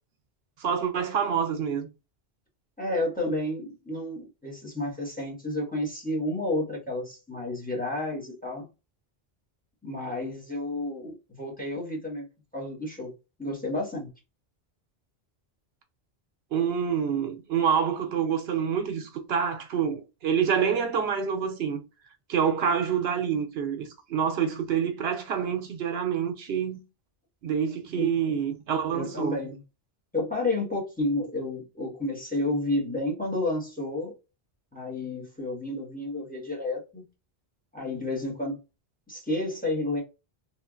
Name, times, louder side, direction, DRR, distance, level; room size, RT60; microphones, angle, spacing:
voice 1, 0.6-1.9 16.5-21.8 22.3-26.8 27.4-29.4, right 7 dB, 80° right, 0.9 m, -27 dB
voice 2, 2.8-8.6 9.8-12.2 12.5-13.1 13.4-14.1 28.0-28.1 28.9-29.6 30.1-34.1 34.7-37.0 37.7-38.6 39.1-40.0, left 2 dB, 10° left, 1.1 m, -31 dB
3.1 x 2.4 x 2.3 m
omnidirectional pair, 1.0 m